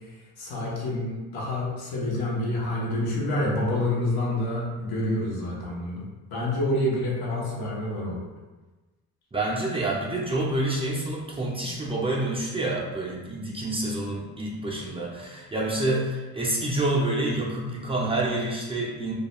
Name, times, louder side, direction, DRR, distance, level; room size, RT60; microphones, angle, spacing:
voice 1, 0.4-6.0 6.3-8.2, left 1 dB, 80° left, -4 dB, 0.8 m, -28 dB
voice 2, 9.3-19.1, right 2 dB, 15° right, -4 dB, 0.4 m, -28 dB
2.3 x 2.1 x 2.9 m, 1.2 s
cardioid pair, 110°, 36 cm